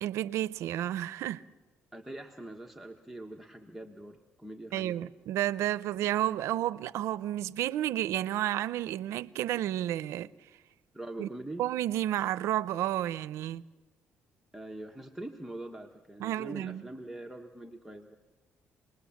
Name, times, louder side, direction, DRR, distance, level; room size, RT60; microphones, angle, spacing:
voice 1, 0.0-1.4 4.7-10.3 11.2-11.3 11.6-13.6 16.2-16.8, right 13 dB, 80° right, 0.7 m, -31 dB
voice 2, 1.9-5.1 10.9-11.6 14.5-18.2, right 1 dB, 5° right, 1.1 m, -43 dB
28.0 x 20.5 x 7.2 m
cardioid pair, 115°, 5 cm